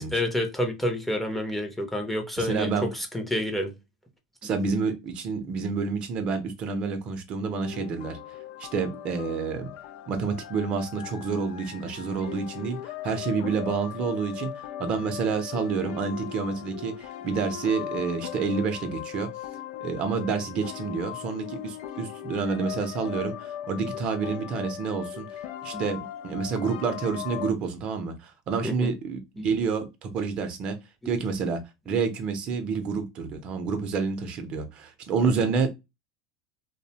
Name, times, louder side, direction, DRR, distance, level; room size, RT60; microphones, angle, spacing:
voice 1, 0.0-3.7 4.4-4.5 25.7-25.8 28.6-28.9 29.4-29.6 31.9-32.0 35.2-35.4, left 1 dB, 5° left, 0.6 m, -29 dB
voice 2, 2.4-2.9 4.4-8.2 8.6-9.7 10.1-14.5 14.8-19.3 19.8-25.3 25.6-30.8 31.1-35.7, right 5 dB, 45° right, 0.6 m, -29 dB
sound 1, 7.6-27.5, left 11 dB, 70° left, 0.3 m, -38 dB
2.6 x 2.1 x 2.8 m
supercardioid pair, 110°, 2 cm